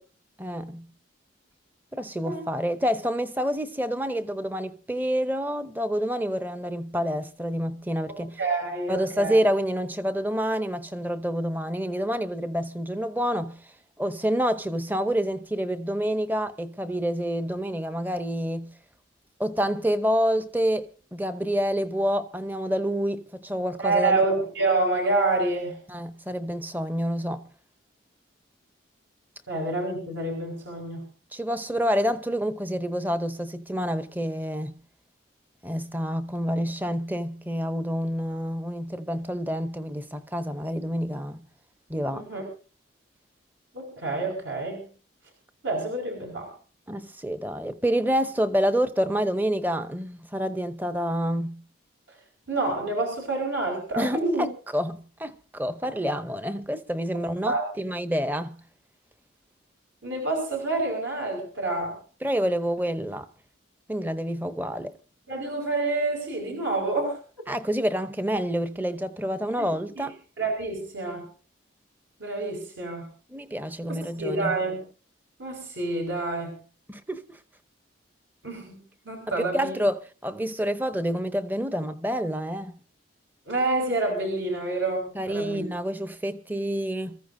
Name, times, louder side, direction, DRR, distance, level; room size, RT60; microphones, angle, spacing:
voice 1, 0.4-0.9 1.9-8.4 8.9-13.6 14.0-18.7 19.4-24.3 25.9-27.4 31.3-34.7 35.6-41.5 41.9-42.3 46.9-51.6 54.0-58.6 62.2-63.3 63.9-65.0 67.5-70.2 73.3-74.6 76.9-77.4 79.4-82.8 85.1-87.2, equal, 10° right, 0.7 m, -28 dB
voice 2, 8.1-9.4 23.8-25.8 29.5-31.1 42.1-42.4 43.7-44.9 45.6-46.5 52.5-54.4 57.5-57.7 60.0-62.0 65.3-67.2 69.6-69.7 70.0-70.1 70.4-71.3 72.2-73.1 73.9-74.8 75.4-76.6 78.4-78.8 79.1-79.7 83.5-85.6, right 2 dB, 70° right, 5.2 m, -28 dB
27.0 x 14.5 x 2.7 m
head